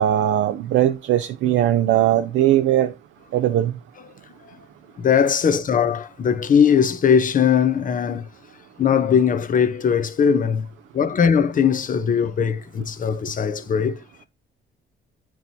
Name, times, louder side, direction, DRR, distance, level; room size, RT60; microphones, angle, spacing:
voice 1, 0.0-2.9 3.3-3.7, right 12 dB, 75° right, 0.5 m, -19 dB
voice 2, 5.0-8.3 8.8-10.7 10.9-14.0, left 7 dB, 45° left, 0.7 m, -19 dB
9.2 x 4.6 x 2.7 m
cardioid pair, 90°, 20 cm